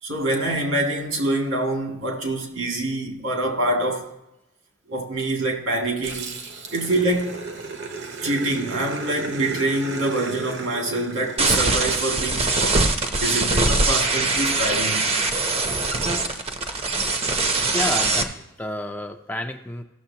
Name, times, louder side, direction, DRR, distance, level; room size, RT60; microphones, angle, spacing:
voice 1, 0.0-4.1 4.9-6.4 6.7-7.4 8.2-15.1 15.7-15.8, right 1 dB, 75° right, 2.2 m, -25 dB
Growling, 6.0-12.7, right 4 dB, 60° right, 1.0 m, -35 dB
sound 1, 11.4-18.2, right 3 dB, 30° right, 0.7 m, -22 dB
voice 2, 17.7-19.8, left 2 dB, 10° left, 0.4 m, -30 dB
14.5 x 6.8 x 2.8 m
head